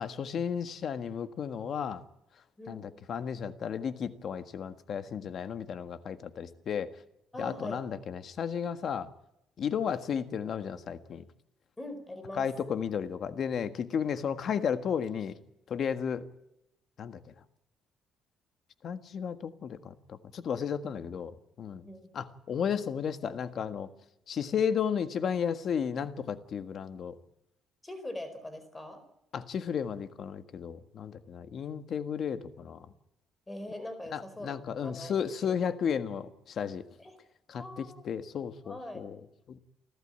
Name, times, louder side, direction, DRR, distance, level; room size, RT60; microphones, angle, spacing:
voice 1, 0.0-2.0 2.7-6.9 7.4-9.1 9.6-11.2 12.4-15.3 15.7-16.2 17.0-17.2 18.8-21.9 22.1-23.9 24.3-27.2 29.3-32.8 34.1-36.9 37.5-39.2 39.5-39.6, left 7 dB, 50° left, 10 dB, 1.6 m, -33 dB
voice 2, 2.6-2.9 7.3-7.8 11.8-12.5 21.8-22.1 27.8-29.0 33.5-35.6 37.0-37.2 37.6-38.0 38.6-39.1, left 1 dB, 15° left, 10 dB, 4.6 m, -42 dB
29.5 x 12.5 x 9.0 m, 0.84 s
cardioid pair, 120°, 0 cm